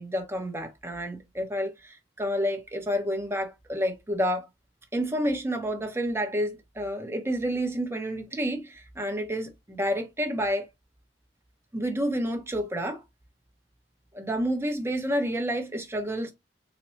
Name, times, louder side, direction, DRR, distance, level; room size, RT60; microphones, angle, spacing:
voice 1, 0.0-4.5 4.9-10.7 11.7-13.0 14.1-16.3, equal, 15° right, 0.9 m, -29 dB
4.1 x 2.2 x 3.1 m
head